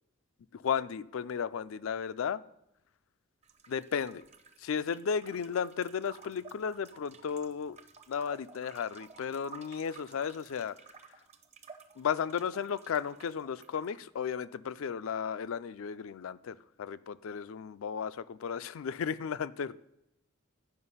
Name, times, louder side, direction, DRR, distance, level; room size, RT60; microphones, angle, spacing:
voice 1, 0.5-2.4 3.7-4.2 4.6-7.8 8.1-10.8 12.0-19.8, left 7 dB, 70° left, 16 dB, 0.4 m, -34 dB
sound 1, 3.4-14.0, right 5 dB, 30° right, 0.6 m, -54 dB
11.5 x 5.1 x 5.6 m, 0.86 s
head